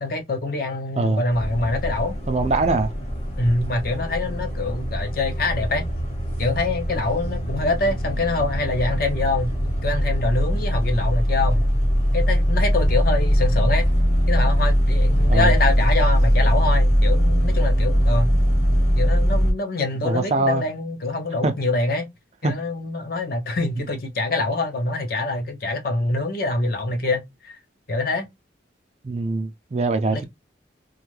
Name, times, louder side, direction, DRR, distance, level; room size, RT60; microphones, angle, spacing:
voice 1, 0.0-2.2 3.4-5.9 6.4-9.5 9.8-11.7 12.1-13.9 14.3-18.3 19.0-22.1 22.4-27.6 27.9-28.3 30.1-30.2, left 2 dB, 50° left, 0.6 m, -25 dB
sound 1, 1.3-19.5, equal, 35° left, 1.0 m, -21 dB
voice 2, 2.3-2.9 15.2-15.5 20.0-20.6 21.4-21.5 22.4-22.5 29.0-30.2, right 2 dB, 35° right, 0.4 m, -22 dB
2.5 x 2.3 x 3.1 m
head